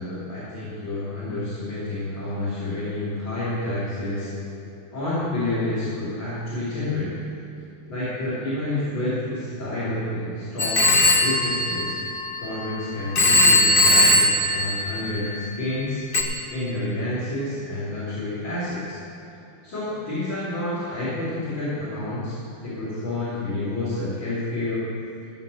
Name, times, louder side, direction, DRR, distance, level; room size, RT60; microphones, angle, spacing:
voice 1, 0.0-4.3 4.9-7.2 7.9-11.9 12.4-16.0 16.5-19.0 19.6-22.4 22.6-24.9, left 1 dB, 60° left, -14 dB, 4.4 m, -29 dB
Telephone, 10.6-12.7 13.1-15.5 16.1-16.2, left 1 dB, 40° left, 0.7 m, -19 dB
15.5 x 5.7 x 8.0 m, 2.8 s
omnidirectional pair, 2.4 m